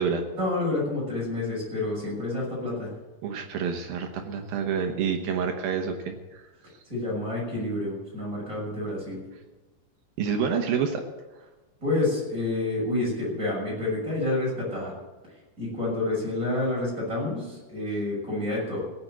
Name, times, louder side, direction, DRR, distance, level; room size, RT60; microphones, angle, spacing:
voice 1, 0.3-2.9 6.9-9.2 11.8-14.9 15.6-18.8, left 2 dB, 20° right, -5 dB, 6.8 m, -28 dB
voice 2, 3.2-6.4 10.2-11.0, right 6 dB, 70° right, 4 dB, 2.5 m, -28 dB
17.0 x 7.9 x 8.0 m, 1.2 s
omnidirectional pair, 5.1 m